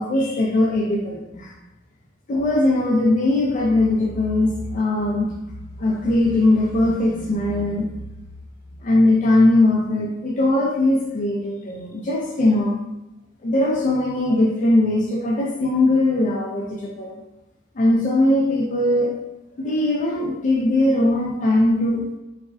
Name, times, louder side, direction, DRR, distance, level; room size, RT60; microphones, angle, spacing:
voice 1, 0.0-1.5 2.3-5.3 5.8-7.9 8.8-12.8 13.4-17.2 17.8-19.1 19.6-22.1, left 2 dB, 40° left, -3 dB, 0.3 m, -20 dB
3.5 x 2.0 x 2.5 m, 0.98 s
head